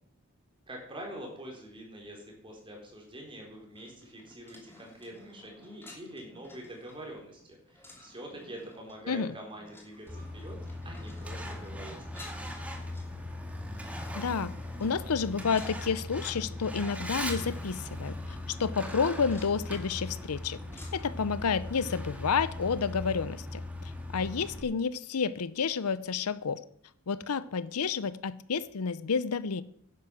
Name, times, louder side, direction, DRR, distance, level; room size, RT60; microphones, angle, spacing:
voice 1, 0.7-10.6 10.8-12.0, right 1 dB, 25° right, 0 dB, 4.0 m, -45 dB
sound 1, 3.7-21.2, left 2 dB, 10° left, 2.8 m, -55 dB
Truck, 10.1-24.6, left 1 dB, 5° right, 1.7 m, -39 dB
voice 2, 14.2-14.5 14.8-20.6 20.9-23.6 24.1-26.6 27.1-29.6, left 5 dB, 85° left, 17 dB, 0.6 m, -30 dB
10.5 x 9.5 x 6.2 m, 0.65 s
head